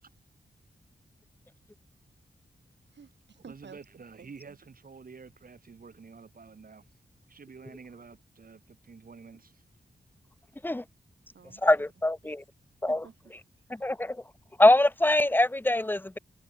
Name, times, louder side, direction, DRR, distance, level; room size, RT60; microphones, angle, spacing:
voice 1, 2.9-3.8 4.2-4.6 11.3-11.6 12.2-12.4 12.9-13.3 13.6-14.0, right 6 dB, 80° right, 6.3 m, -52 dB
voice 2, 3.5-6.9 7.3-9.6, right 5 dB, 55° right, 3.5 m, -49 dB
voice 3, 11.6-12.4 12.8-13.0 13.7-14.2 14.6-16.2, left 1 dB, 10° left, 0.8 m, -23 dB
wide cardioid pair, 150°, 18 cm